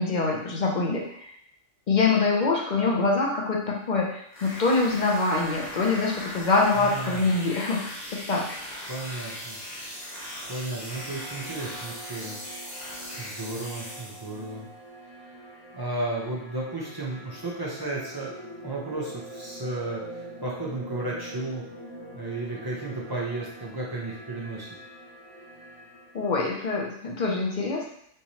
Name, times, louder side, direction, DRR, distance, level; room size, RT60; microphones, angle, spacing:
voice 1, 0.0-1.3 1.9-7.8 8.3-8.6 26.1-27.8, left 3 dB, 55° left, -1 dB, 0.5 m, -24 dB
sound 1, 4.3-14.5, equal, 35° left, 1.0 m, -39 dB
voice 2, 6.8-7.3 8.9-9.6 10.5-12.4 13.1-14.7 15.0-15.4 15.7-18.3 18.6-21.6 22.1-24.7, right 2 dB, 35° right, -4 dB, 0.4 m, -34 dB
sound 2, 9.8-26.7, right 1 dB, 75° left, 1.6 m, -45 dB
3.7 x 3.0 x 2.7 m, 0.69 s
omnidirectional pair, 1.4 m